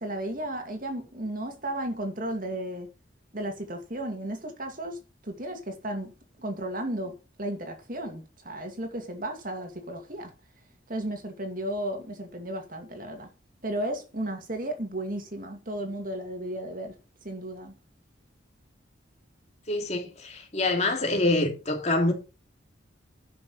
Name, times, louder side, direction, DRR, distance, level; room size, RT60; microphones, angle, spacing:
voice 1, 0.0-2.9 3.3-5.0 5.2-6.1 6.4-10.3 10.9-13.3 13.6-17.0 17.2-17.7, right 1 dB, 45° right, 2.4 m, -34 dB
voice 2, 19.7-22.1, left 2 dB, 35° left, 3.1 m, -26 dB
11.5 x 6.3 x 5.6 m
head